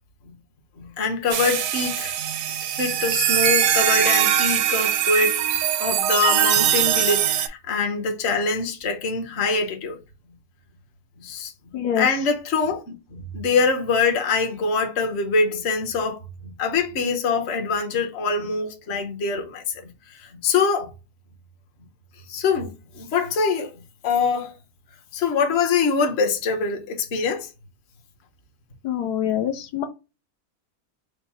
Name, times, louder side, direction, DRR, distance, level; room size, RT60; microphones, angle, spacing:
voice 1, 0.8-2.1 2.7-5.4 5.8-10.0 11.2-11.5 12.0-20.9 22.3-22.7 22.9-23.7 24.0-24.5 25.1-27.5, left 4 dB, 50° left, 1.0 m, -24 dB
sound 1, 1.3-7.5, right 10 dB, 70° right, 0.8 m, -21 dB
voice 2, 11.7-12.1 28.8-29.9, left 9 dB, 80° left, 1.2 m, -25 dB
4.7 x 2.1 x 4.0 m
omnidirectional pair, 1.7 m